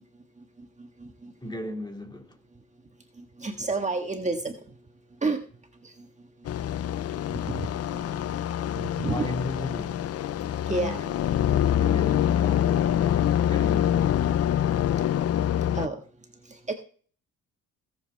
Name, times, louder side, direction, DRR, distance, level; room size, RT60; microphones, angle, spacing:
voice 1, 0.4-1.5 3.2-4.6 5.2-5.4 5.8-6.1 7.3-8.2 8.8-9.2 10.6-11.0 15.7-16.0 16.4-16.7, right 3 dB, 25° right, 1.6 m, -31 dB
voice 2, 1.4-2.4 9.0-10.1 10.7-14.3, left 1 dB, 15° left, 2.4 m, -37 dB
sound 1, 6.5-15.9, left 10 dB, 55° left, 0.6 m, -25 dB
18.0 x 7.5 x 3.4 m
cardioid pair, 90°, 30 cm